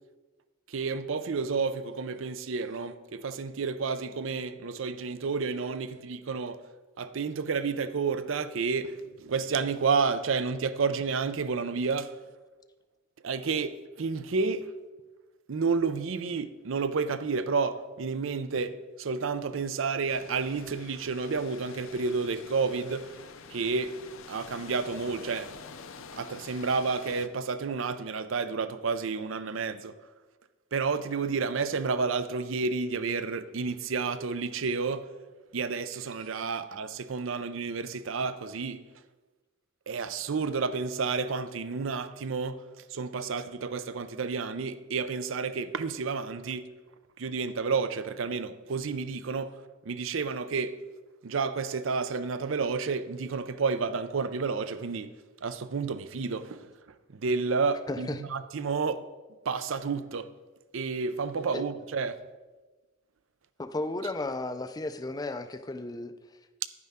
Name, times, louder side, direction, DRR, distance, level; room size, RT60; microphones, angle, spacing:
voice 1, 0.7-6.6 7.0-12.2 13.2-14.7 15.5-23.1 23.5-25.5 26.1-30.0 30.7-35.1 35.5-38.8 39.9-46.7 47.2-49.6 49.8-50.8 51.2-55.1 55.4-56.7 57.1-59.1 59.5-60.3 60.7-62.2, right 4 dB, 70° right, 0.5 m, -30 dB
sound 1, 20.1-27.3, left 5 dB, 75° left, 0.6 m, -47 dB
voice 2, 57.9-58.2 61.5-61.6 63.6-66.1, left 2 dB, 20° left, 0.4 m, -34 dB
10.5 x 9.5 x 3.6 m
head